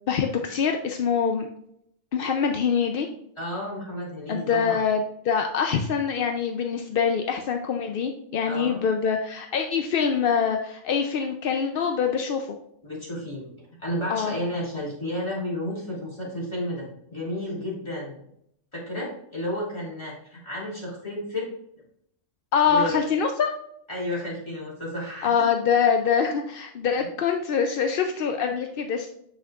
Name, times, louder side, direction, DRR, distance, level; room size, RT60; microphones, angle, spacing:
voice 1, 0.1-1.5 2.1-3.1 4.3-12.5 14.1-14.3 22.5-23.5 25.2-29.1, left 6 dB, 60° left, 4 dB, 0.6 m, -24 dB
voice 2, 3.4-4.8 8.5-8.8 12.8-13.4 13.8-18.2 18.7-21.5 22.7-23.0 23.9-25.3, left 1 dB, 20° left, -5 dB, 2.8 m, -32 dB
7.5 x 6.3 x 2.4 m, 0.72 s
omnidirectional pair, 1.4 m